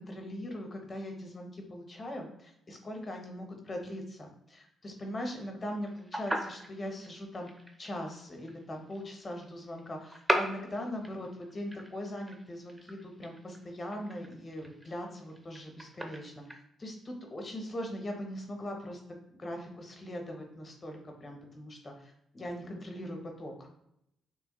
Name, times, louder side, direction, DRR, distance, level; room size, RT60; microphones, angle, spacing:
voice 1, 0.0-7.5 7.8-23.7, left 1 dB, 30° left, 2 dB, 0.6 m, -40 dB
sound 1, 5.9-16.5, equal, 10° right, 0.4 m, -38 dB
2.9 x 2.1 x 2.8 m, 0.78 s
cardioid pair, 90°, 0 cm